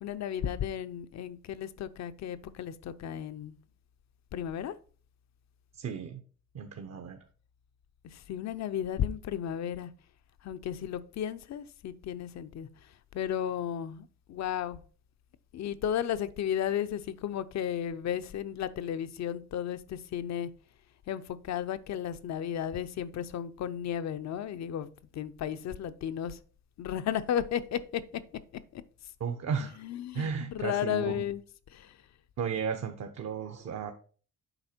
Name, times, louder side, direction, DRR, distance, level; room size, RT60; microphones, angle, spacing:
voice 1, 0.0-3.6 4.3-4.8 8.1-9.9 10.4-12.7 13.1-14.8 15.5-20.5 21.1-24.9 25.1-26.4 26.8-28.0 28.7-28.8 29.8-31.4 31.7-32.0, left 9 dB, 65° left, 0.7 m, -34 dB
voice 2, 5.7-6.2 6.5-7.2 29.2-29.8 30.1-31.2 32.4-33.9, right 6 dB, 60° right, 0.9 m, -34 dB
8.0 x 4.9 x 4.4 m
cardioid pair, 90°, 30 cm